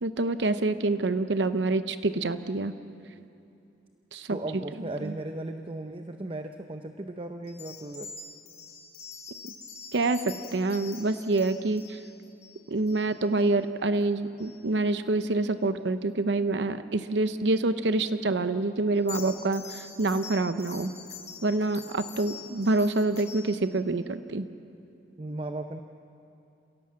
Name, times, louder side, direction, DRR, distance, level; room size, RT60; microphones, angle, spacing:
voice 1, 0.0-2.7 4.1-4.4 5.0-5.1 9.9-12.0 12.7-20.9 21.4-24.5, right 2 dB, 70° right, 11 dB, 0.7 m, -27 dB
voice 2, 4.3-8.1 25.2-25.8, right 2 dB, 30° right, 6 dB, 0.7 m, -36 dB
sound 1, 7.4-13.4 13.9-14.1 14.4-14.5 18.9-23.5, left 6 dB, 40° left, 5.2 m, -45 dB
27.5 x 17.0 x 7.5 m, 2.7 s
head